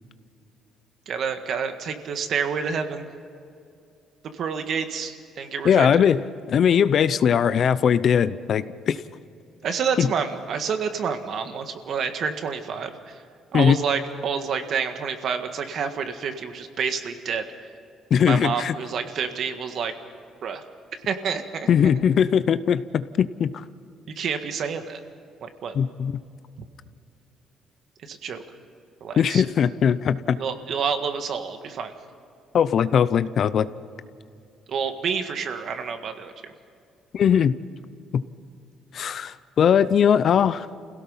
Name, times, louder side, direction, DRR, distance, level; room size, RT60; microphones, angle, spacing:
voice 1, 1.1-3.1 4.3-6.0 9.6-13.1 13.5-17.4 18.2-19.9 20.4-20.6 21.0-21.7 24.1-25.0 25.4-25.7 28.1-28.4 29.0-29.4 30.4-31.9 34.7-36.5, right 6 dB, 50° right, 7 dB, 1.7 m, -28 dB
voice 2, 5.6-6.2 6.5-9.0 10.0-10.1 13.5-13.8 18.1-18.7 21.7-23.6 25.7-26.1 29.2-30.4 32.5-33.7 37.1-37.5 38.9-40.7, left 8 dB, 45° left, 15 dB, 0.6 m, -20 dB
28.5 x 17.0 x 5.6 m, 2.5 s
cardioid pair, 140°, 0 cm